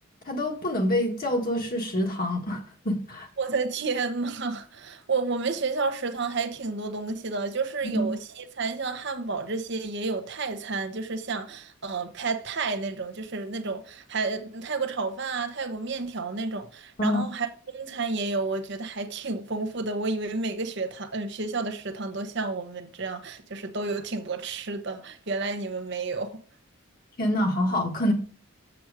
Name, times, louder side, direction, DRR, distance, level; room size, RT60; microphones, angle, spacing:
voice 1, 0.2-3.3 7.8-8.1 17.0-17.2 27.2-28.1, left 1 dB, 40° left, 1.7 m, -26 dB
voice 2, 3.4-17.5 17.7-26.4, right 3 dB, 50° right, 0.9 m, -31 dB
7.8 x 6.0 x 4.9 m
head